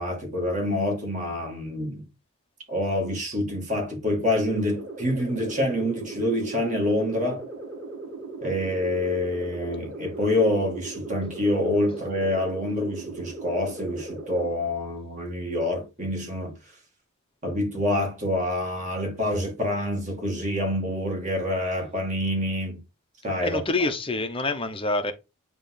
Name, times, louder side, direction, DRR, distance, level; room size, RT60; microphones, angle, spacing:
voice 1, 0.0-2.0 2.7-7.4 8.4-16.5 17.4-22.8 23.2-23.6, left 1 dB, 35° right, 2.2 m, -26 dB
sound 1, 4.4-14.5, right 3 dB, 60° right, 2.2 m, -38 dB
voice 2, 23.4-25.1, left 2 dB, 25° left, 0.8 m, -26 dB
8.7 x 3.1 x 3.8 m
head